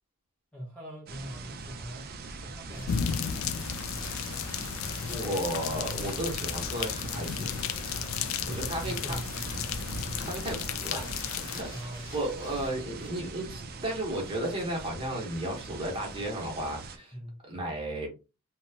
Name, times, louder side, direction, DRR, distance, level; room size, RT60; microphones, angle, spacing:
voice 1, 0.5-3.5 8.4-9.3 9.6-9.9 11.7-12.1 17.1-17.4, equal, 5° left, 0.6 m, -43 dB
sound 1, 1.1-17.0, right 3 dB, 45° right, 0.4 m, -41 dB
Wind, 1.9-13.1, left 2 dB, 40° left, 0.8 m, -51 dB
sound 2, 2.9-11.6, left 8 dB, 70° left, 0.3 m, -34 dB
voice 2, 5.1-7.5 8.5-9.2 10.2-11.1 11.4-11.7 12.1-17.1 17.5-18.1, right 1 dB, 25° right, 0.9 m, -34 dB
2.8 x 2.2 x 2.7 m
head